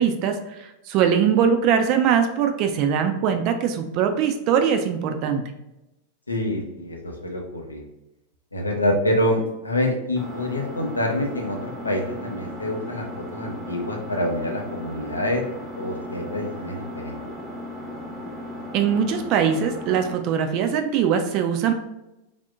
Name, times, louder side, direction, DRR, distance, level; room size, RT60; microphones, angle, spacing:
voice 1, 0.0-5.4 18.7-21.7, right 7 dB, 40° right, 6 dB, 0.3 m, -21 dB
voice 2, 6.3-7.8 8.5-15.4 15.8-17.2, left 1 dB, 80° left, 2 dB, 0.6 m, -26 dB
Engine, 10.2-20.2, left 1 dB, 10° left, 0.9 m, -36 dB
3.3 x 2.5 x 2.5 m, 0.92 s
figure-of-eight pair, 90°, 0 cm